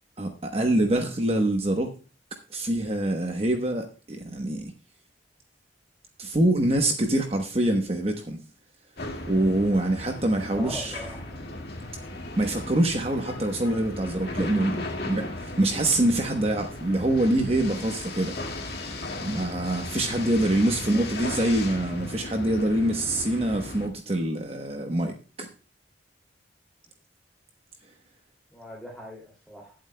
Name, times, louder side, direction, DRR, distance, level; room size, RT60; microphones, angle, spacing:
voice 1, 0.2-1.9 2.5-4.7 6.2-8.4 9.3-11.0 12.4-25.5, right 1 dB, 30° right, 4 dB, 1.0 m, -25 dB
sound 1, 9.0-23.9, left 2 dB, 55° left, 1.9 m, -36 dB
voice 2, 10.5-11.4 20.6-21.0 28.5-29.7, equal, ahead, -3 dB, 2.5 m, -41 dB
20.5 x 7.7 x 2.2 m, 0.34 s
head